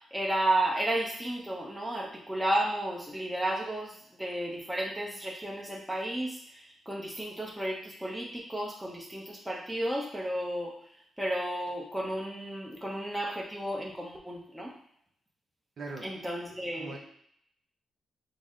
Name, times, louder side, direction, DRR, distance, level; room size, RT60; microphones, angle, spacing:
voice 1, 0.1-10.7 11.2-14.7 16.0-17.0, right 1 dB, 5° right, -2 dB, 0.7 m, -33 dB
voice 2, 15.8-16.1 16.7-17.0, right 3 dB, 55° right, 0 dB, 0.6 m, -40 dB
3.9 x 2.0 x 3.6 m, 0.71 s
cardioid pair, 120°, 0 cm